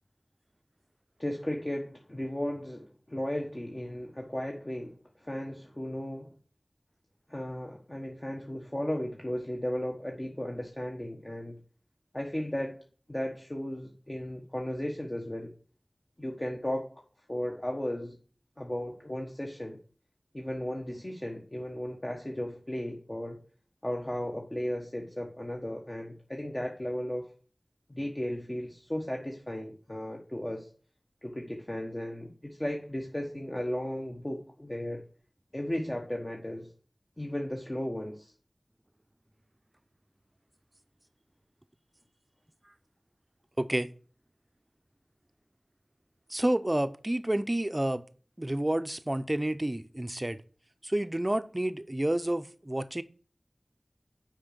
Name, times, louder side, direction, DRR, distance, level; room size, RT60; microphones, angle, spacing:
voice 1, 1.2-6.3 7.3-11.6 12.1-12.8 13.1-15.5 16.2-16.9 17.3-18.2 18.6-19.8 20.3-23.4 23.8-27.3 27.9-30.7 31.2-35.0 35.5-36.7 37.2-38.3, left 1 dB, 30° left, 1.2 m, -35 dB
voice 2, 43.6-43.9 46.3-48.0 48.4-50.4 50.8-53.0, right 1 dB, 30° right, 0.6 m, -29 dB
6.1 x 5.1 x 6.6 m
wide cardioid pair, 50°, 0 cm